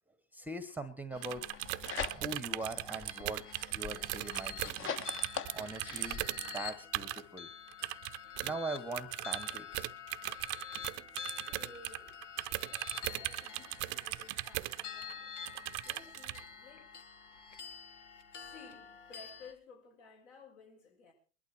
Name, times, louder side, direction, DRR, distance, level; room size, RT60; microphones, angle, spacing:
voice 1, 0.3-1.4 2.1-3.4 3.7-4.9 5.5-7.5 8.4-9.9 12.5-12.8, right 2 dB, 5° right, 1.0 m, -42 dB
sound 1, 1.1-19.5, left 7 dB, 85° left, 1.8 m, -48 dB
sound 2, 1.2-7.2 7.7-8.5 8.9-15.1 15.5-16.4, right 21 dB, 45° right, 0.7 m, -38 dB
sound 3, 1.4-2.6 3.0-6.2, left 6 dB, 35° left, 1.3 m, -42 dB
voice 2, 10.8-12.2 12.9-15.4 15.8-16.9 18.3-21.1, left 4 dB, 65° left, 7.1 m, -56 dB
21.0 x 11.5 x 4.6 m
hypercardioid pair, 100°, 36 cm